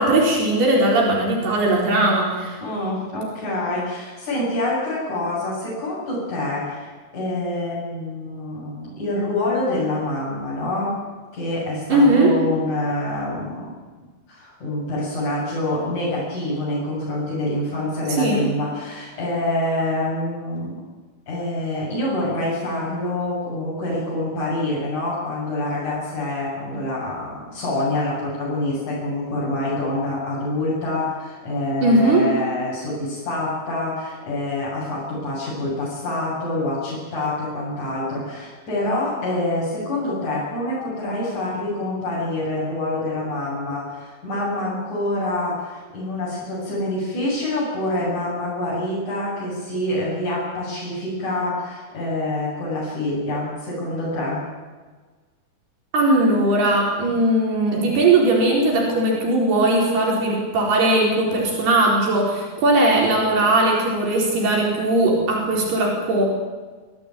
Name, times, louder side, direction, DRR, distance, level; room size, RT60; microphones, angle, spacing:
voice 1, 0.0-2.6 11.9-12.4 18.2-18.4 31.8-32.3 55.9-66.3, right 2 dB, 80° right, -2 dB, 6.4 m, -19 dB
voice 2, 2.6-11.0 11.3-13.7 14.3-20.8 21.3-54.4, left 1 dB, 45° left, -7 dB, 8.7 m, -26 dB
25.0 x 16.5 x 9.1 m, 1.4 s
omnidirectional pair, 4.5 m